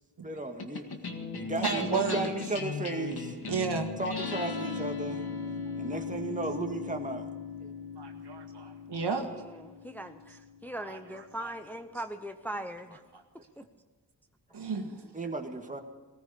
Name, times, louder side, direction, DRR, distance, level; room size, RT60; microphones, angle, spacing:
voice 1, 0.2-0.9 1.3-3.4 4.0-5.3 5.8-7.3 7.6-7.7 15.1-15.8, right 2 dB, 20° right, 4 dB, 1.8 m, -35 dB
sound 1, 0.6-11.2, left 4 dB, 60° left, 2.1 m, -38 dB
voice 2, 1.6-2.3 3.5-3.9 5.9-6.0 8.0-9.3 10.8-11.5 13.1-13.2 14.5-15.0, right 5 dB, 70° right, 4 dB, 2.1 m, -33 dB
voice 3, 9.0-13.0 13.6-13.7, right 1 dB, 5° left, 7 dB, 0.8 m, -40 dB
19.0 x 14.0 x 5.2 m, 1.4 s
cardioid pair, 75°, 42 cm